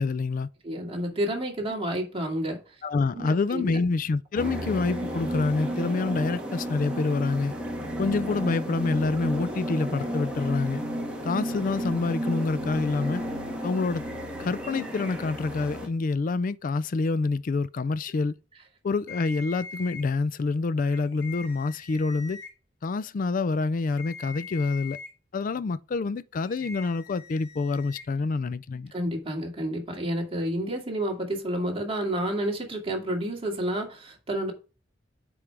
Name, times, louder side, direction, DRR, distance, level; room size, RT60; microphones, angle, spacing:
voice 1, 0.0-0.5 2.8-7.5 8.0-10.8 11.2-13.2 13.6-14.1 14.4-18.4 18.8-22.4 22.8-25.0 25.3-28.9, left 3 dB, 45° left, 0.4 m, -27 dB
voice 2, 0.6-2.6 3.1-3.6 4.4-4.5 28.9-34.5, right 1 dB, 30° right, 2.3 m, -30 dB
sound 1, 4.4-15.9, equal, 5° right, 1.8 m, -32 dB
sound 2, 19.1-20.0 20.8-22.5 23.8-25.1 26.4-28.0, left 5 dB, 80° left, 2.8 m, -43 dB
9.7 x 4.9 x 3.4 m
head